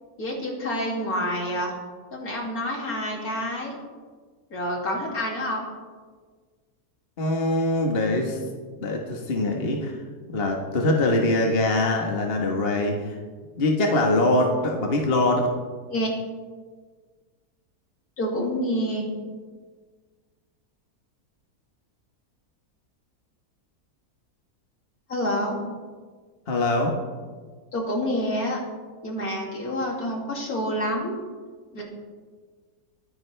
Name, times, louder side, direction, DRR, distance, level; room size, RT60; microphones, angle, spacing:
voice 1, 0.2-1.8 2.1-3.8 4.5-5.6 15.9-16.1 18.2-19.1 25.1-25.6 27.7-28.6 29.0-31.1 31.7-31.8, equal, 65° left, -2 dB, 3.1 m, -28 dB
voice 2, 7.2-8.4 8.8-10.0 10.3-13.2 13.6-15.5 26.5-26.9, left 2 dB, 40° left, 1 dB, 1.5 m, -23 dB
22.5 x 10.0 x 3.4 m, 1.5 s
omnidirectional pair, 1.7 m